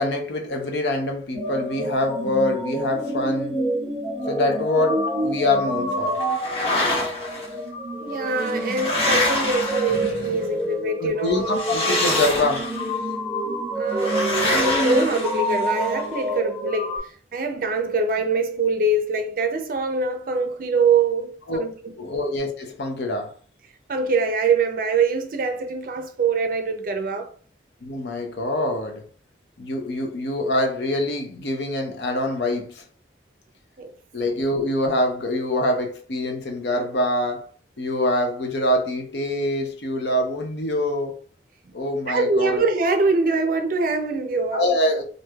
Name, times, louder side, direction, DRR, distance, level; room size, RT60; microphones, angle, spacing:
voice 1, 0.0-3.6 4.3-6.2 11.0-12.7 21.5-21.6 22.0-23.3 27.8-29.0 29.6-32.8 34.1-37.4 37.8-41.1 41.7-42.6 44.5-45.0, left 1 dB, 75° left, 0.7 m, -25 dB
sound 1, 1.3-17.0, right 1 dB, ahead, 1.0 m, -27 dB
sound 2, 6.2-7.5 8.3-10.4 11.5-12.9 14.0-15.9, left 2 dB, 35° left, 1.0 m, -26 dB
voice 2, 8.0-11.5 13.8-16.9 17.3-21.7 23.9-27.3 33.8-33.9 42.1-44.7, right 3 dB, 50° right, 0.4 m, -23 dB
3.1 x 2.6 x 2.2 m
head